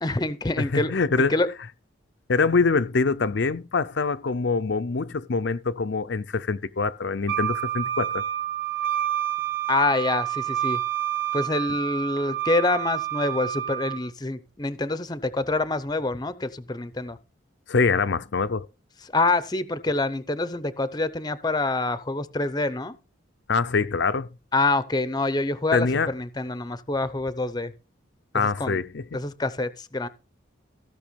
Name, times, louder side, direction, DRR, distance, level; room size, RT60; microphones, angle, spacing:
voice 1, 0.0-0.9 1.2-1.5 9.7-10.8 11.3-17.2 19.0-23.0 24.5-27.7 28.3-28.8 29.1-30.1, left 2 dB, 20° left, 0.7 m, -26 dB
voice 2, 0.6-1.3 2.3-8.2 17.7-18.6 23.5-24.3 25.7-26.1 28.3-29.0, left 4 dB, 55° left, 0.5 m, -24 dB
Wind instrument woodwind instrument, 7.3-14.0, right 12 dB, 75° right, 1.8 m, -28 dB
15.5 x 6.0 x 5.2 m
head